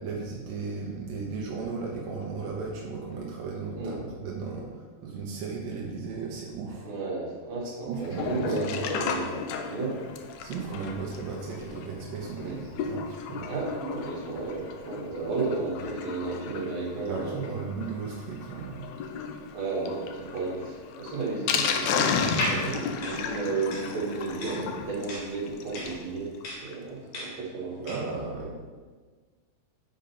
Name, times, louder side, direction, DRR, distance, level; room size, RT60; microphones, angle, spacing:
voice 1, 0.0-6.9 7.9-8.8 10.4-13.5 17.1-18.8 27.8-28.5, right 4 dB, 85° right, -3 dB, 2.7 m, -35 dB
voice 2, 6.8-9.4 9.6-10.0 12.4-12.6 13.4-17.6 19.5-26.3 26.6-28.5, right 3 dB, 60° right, -5 dB, 3.2 m, -33 dB
Sink (filling or washing), 8.0-26.1 26.4-26.5 26.7-26.8 27.1-27.2, left 6 dB, 75° left, 1.7 m, -34 dB
sound 1, 22.2-28.2, left 1 dB, 60° left, 2.5 m, -36 dB
7.2 x 5.2 x 5.8 m, 1.4 s
omnidirectional pair, 3.7 m